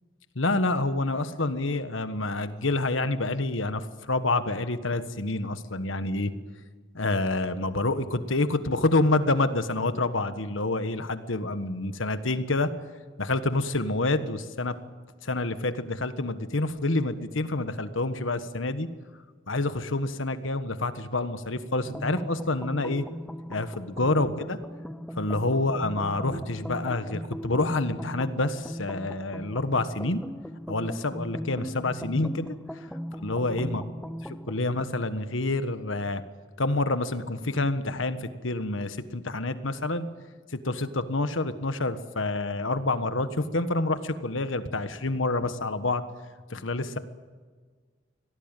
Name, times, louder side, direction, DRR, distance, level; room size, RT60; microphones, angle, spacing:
voice 1, 0.3-6.3 6.9-12.7 13.2-14.7 15.2-18.9 19.5-23.0 23.5-24.6 25.2-30.2 30.7-32.6 33.1-33.8 34.3-36.2 36.6-40.1 40.5-46.0 46.5-47.0, left 2 dB, 80° left, 10 dB, 1.5 m, -28 dB
sound 1, 21.8-34.6, equal, 5° left, 0.6 m, -39 dB
24.5 x 18.0 x 9.1 m, 1.5 s
head